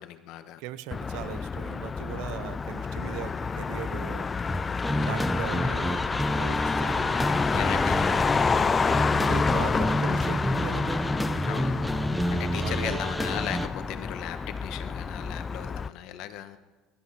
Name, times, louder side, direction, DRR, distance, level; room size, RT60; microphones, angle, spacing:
voice 1, 0.0-0.6 3.2-3.4 4.9-5.2 7.5-8.2 11.4-11.9 12.3-16.6, left 12 dB, 65° left, 9 dB, 1.3 m, -37 dB
voice 2, 0.6-4.3 5.1-7.3 9.1-11.0 12.6-13.0, right 14 dB, 75° right, 16 dB, 0.7 m, -39 dB
Motor vehicle (road), 0.9-15.9, left 5 dB, 25° left, 0.4 m, -29 dB
sound 1, 4.5-13.7, equal, ahead, 0.9 m, -29 dB
19.0 x 13.0 x 5.9 m, 1.3 s
cardioid pair, 120°, 0 cm